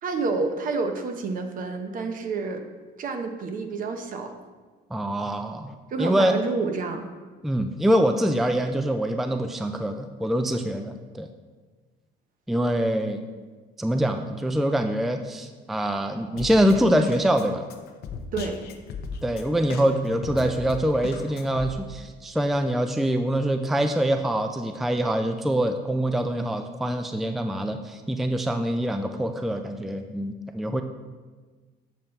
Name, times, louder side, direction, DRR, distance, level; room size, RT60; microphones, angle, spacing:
voice 1, 0.0-2.7 3.0-4.3 5.9-7.0 18.3-18.6, right 4 dB, 55° right, 6 dB, 0.9 m, -29 dB
voice 2, 4.9-6.4 7.4-11.3 12.5-13.2 13.8-17.6 19.2-30.8, right 1 dB, ahead, 6 dB, 0.4 m, -24 dB
Drum kit, 16.4-21.7, left 5 dB, 70° left, 0.7 m, -37 dB
7.4 x 5.4 x 4.5 m, 1.4 s
cardioid pair, 110°, 17 cm